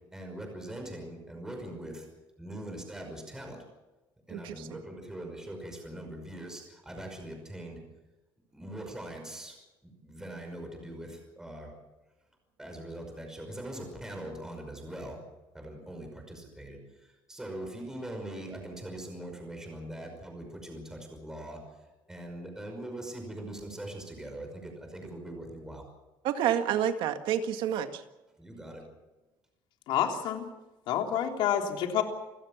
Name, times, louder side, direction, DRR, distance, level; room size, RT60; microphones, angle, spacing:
voice 1, 0.1-2.1 2.4-3.6 4.3-7.8 8.5-11.7 12.6-15.2 15.5-16.8 17.3-21.6 22.1-25.8 28.4-28.8, right 1 dB, 5° right, 3 dB, 5.6 m, -42 dB
voice 2, 4.3-4.8 26.2-28.0, right 10 dB, 75° right, 8 dB, 1.9 m, -29 dB
voice 3, 29.9-30.5 30.9-32.0, left 9 dB, 70° left, 3 dB, 3.5 m, -28 dB
28.5 x 15.5 x 7.3 m, 1.1 s
cardioid pair, 150°, 9 cm